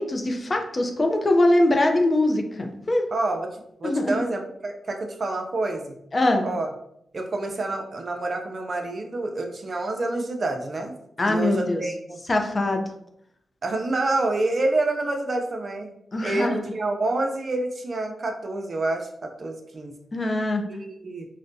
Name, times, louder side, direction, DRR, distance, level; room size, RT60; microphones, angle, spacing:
voice 1, 0.0-3.0 3.8-4.2 6.1-6.5 11.2-11.8 12.3-12.8 16.1-16.6 20.1-20.6, left 1 dB, 40° left, 4 dB, 0.5 m, -22 dB
voice 2, 3.1-3.5 3.8-6.0 6.4-6.7 7.1-10.9 11.3-12.2 13.6-15.9 16.2-19.9 20.7-21.3, right 2 dB, 50° right, 3 dB, 0.5 m, -27 dB
4.0 x 2.1 x 2.6 m, 0.74 s
cardioid pair, 50°, 0 cm